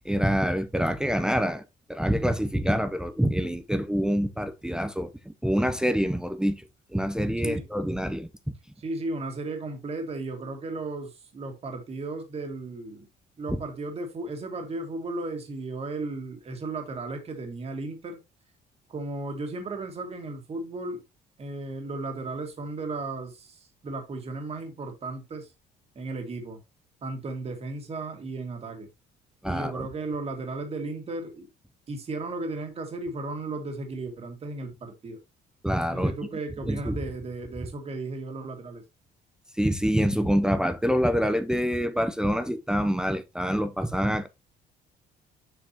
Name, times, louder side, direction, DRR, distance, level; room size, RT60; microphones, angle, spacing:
voice 1, 0.0-1.6 1.9-6.6 6.9-8.3 29.4-29.9 35.6-36.1 36.6-37.0 39.6-44.3, equal, 5° right, 0.7 m, -26 dB
voice 2, 8.8-13.1 13.4-18.2 18.9-21.0 21.4-25.5 26.0-26.6 27.0-28.9 29.5-31.5 31.9-35.2 35.9-38.8, right 2 dB, 35° right, 2.1 m, -35 dB
7.2 x 5.7 x 2.9 m
cardioid pair, 110°, 17 cm